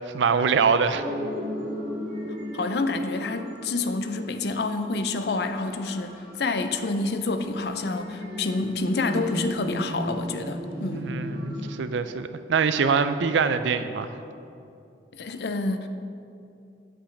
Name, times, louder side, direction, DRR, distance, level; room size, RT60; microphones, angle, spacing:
voice 1, 0.1-1.0 10.9-14.2, right 5 dB, 90° right, 11 dB, 0.4 m, -24 dB
sound 1, 0.9-11.6, equal, 50° right, 1.9 m, -35 dB
voice 2, 2.5-11.1 15.1-15.9, left 3 dB, 65° left, 8 dB, 0.5 m, -28 dB
8.5 x 7.8 x 3.3 m, 2.6 s
head